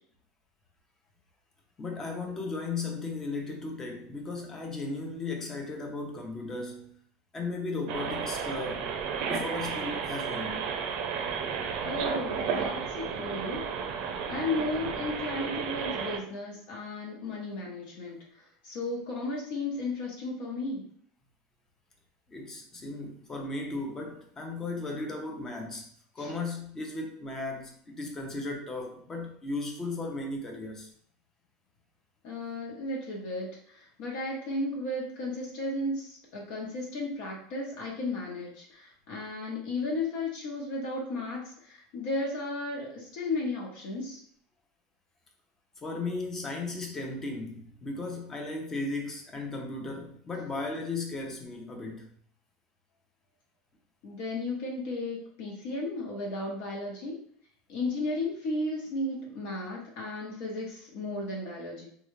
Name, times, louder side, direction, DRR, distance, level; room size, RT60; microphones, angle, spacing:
voice 1, 1.8-6.9 7.3-8.9 9.3-10.6 22.3-25.9 26.1-30.9 45.8-52.1, left 3 dB, 20° left, 0.7 m, -36 dB
sound 1, 7.9-16.2, right 6 dB, 55° right, 0.6 m, -33 dB
voice 2, 11.8-13.6 14.3-20.8 26.2-26.3 32.2-44.2 54.0-57.2 57.7-61.9, left 2 dB, 60° left, 1.0 m, -34 dB
3.7 x 2.4 x 3.2 m
supercardioid pair, 145°, 2 cm